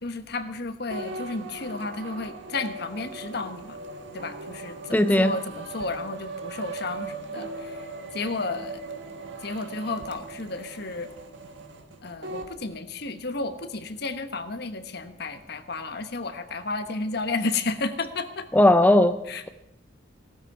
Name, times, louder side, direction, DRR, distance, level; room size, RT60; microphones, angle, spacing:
voice 1, 0.0-3.8 4.1-7.9 8.1-8.8 9.4-11.1 12.0-18.5 19.3-19.5, left 3 dB, 60° left, 9 dB, 1.2 m, -32 dB
sound 1, 0.9-12.5, right 3 dB, 80° right, 1.6 m, -39 dB
voice 2, 4.9-5.3 18.5-19.2, left 1 dB, 10° left, 9 dB, 0.6 m, -17 dB
17.5 x 12.5 x 4.8 m, 0.85 s
head